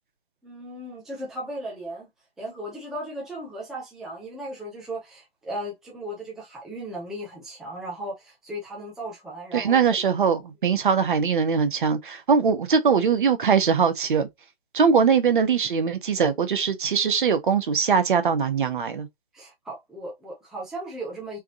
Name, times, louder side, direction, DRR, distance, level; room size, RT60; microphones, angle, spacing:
voice 1, 0.4-2.1 2.4-10.0 19.3-21.4, right 1 dB, ahead, 0.6 m, -36 dB
voice 2, 9.5-14.3 14.7-19.1, right 6 dB, 55° right, 1.0 m, -21 dB
3.5 x 3.5 x 2.8 m
figure-of-eight pair, 145°, 30 cm